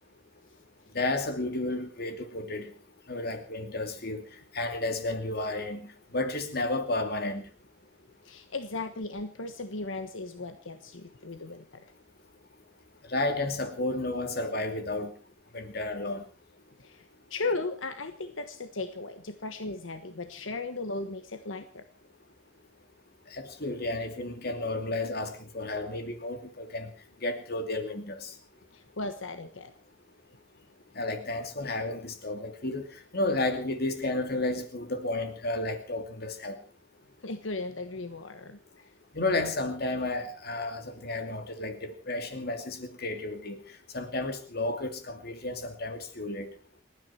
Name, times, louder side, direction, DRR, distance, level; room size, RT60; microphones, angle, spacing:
voice 1, 0.9-2.7 3.1-4.2 4.5-5.8 6.1-7.5 13.1-15.1 15.5-16.2 23.3-26.9 27.2-28.3 31.0-36.6 39.1-43.6 43.9-46.5, left 2 dB, 55° left, 7 dB, 2.7 m, -32 dB
voice 2, 8.2-11.9 16.8-17.0 17.3-21.8 28.7-29.7 37.2-38.8, left 3 dB, 85° left, 9 dB, 1.3 m, -36 dB
29.5 x 9.9 x 4.4 m, 0.37 s
head